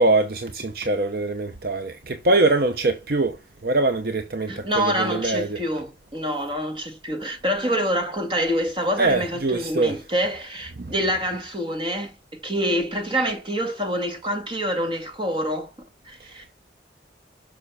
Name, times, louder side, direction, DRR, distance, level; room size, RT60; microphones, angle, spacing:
voice 1, 0.0-3.4 3.6-5.6 9.0-10.0 10.8-10.9, right 2 dB, 55° right, 0.8 m, -23 dB
voice 2, 4.5-12.1 12.4-15.7 16.1-16.5, equal, 30° right, 2.2 m, -26 dB
6.5 x 6.2 x 5.7 m
head